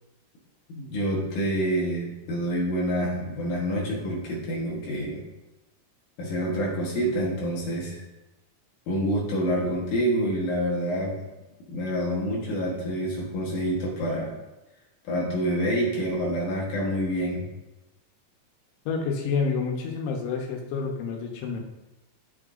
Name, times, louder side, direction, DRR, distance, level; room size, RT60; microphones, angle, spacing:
voice 1, 0.7-5.2 6.2-8.0 8.9-11.1 11.7-14.3 15.1-17.4, equal, 60° left, -2 dB, 2.2 m, -27 dB
voice 2, 18.9-21.6, left 5 dB, 85° left, 1 dB, 3.4 m, -28 dB
12.5 x 6.5 x 2.6 m, 1.0 s
omnidirectional pair, 5.2 m